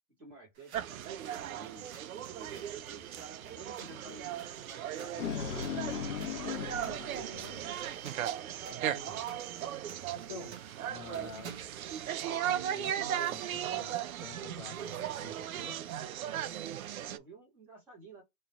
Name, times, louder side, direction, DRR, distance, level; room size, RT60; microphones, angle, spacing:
voice 1, 0.2-1.2 1.5-3.0 3.5-6.5 7.1-7.4 17.0-18.2, right 3 dB, 5° right, 0.8 m, -52 dB
sound 1, 0.5-11.9, right 6 dB, 45° right, 1.1 m, -55 dB
sound 2, 0.7-17.2, right 10 dB, 65° right, 0.6 m, -37 dB
sound 3, 4.8-8.1, left 8 dB, 85° left, 1.0 m, -38 dB
voice 2, 7.1-7.6 8.7-9.2 9.6-9.7 10.1-15.9, left 3 dB, 25° left, 0.4 m, -49 dB
3.1 x 2.3 x 3.9 m
hypercardioid pair, 170°, 45 cm